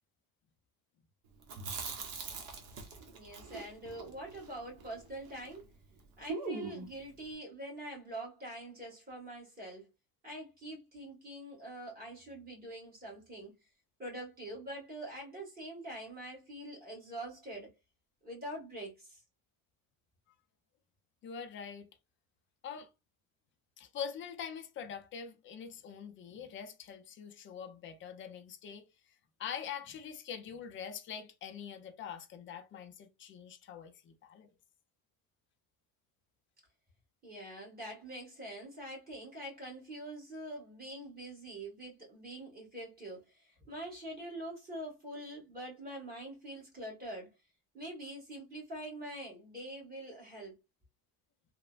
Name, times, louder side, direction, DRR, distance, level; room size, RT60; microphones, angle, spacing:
Chewing mastication, 1.4-5.6 5.9-6.0 6.3-7.0, right 4 dB, 50° right, 0.9 m, -42 dB
voice 1, 3.1-5.7 6.2-9.9 10.2-13.5 14.0-17.7 18.2-19.2 37.2-47.3 47.7-50.5, right 1 dB, 25° right, 1.6 m, -44 dB
voice 2, 21.2-21.9 22.6-22.9 23.8-28.8 29.4-34.5, left 7 dB, 35° left, 0.4 m, -44 dB
3.1 x 2.1 x 2.3 m
cardioid pair, 155°, 38 cm